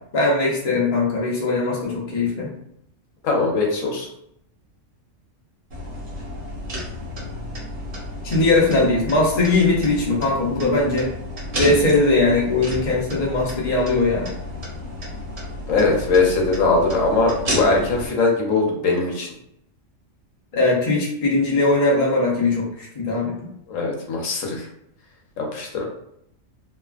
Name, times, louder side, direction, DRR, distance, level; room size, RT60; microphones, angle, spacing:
voice 1, 0.1-2.5 8.2-11.1 11.5-14.3 20.5-23.3, left 2 dB, 35° left, -4 dB, 0.6 m, -20 dB
voice 2, 3.2-4.1 15.7-19.3 23.7-24.7 25.4-25.8, left 3 dB, 75° left, -1 dB, 1.1 m, -20 dB
sound 1, 5.7-18.1, equal, 50° right, 0.9 m, -32 dB
3.1 x 2.1 x 2.4 m, 0.75 s
omnidirectional pair, 1.3 m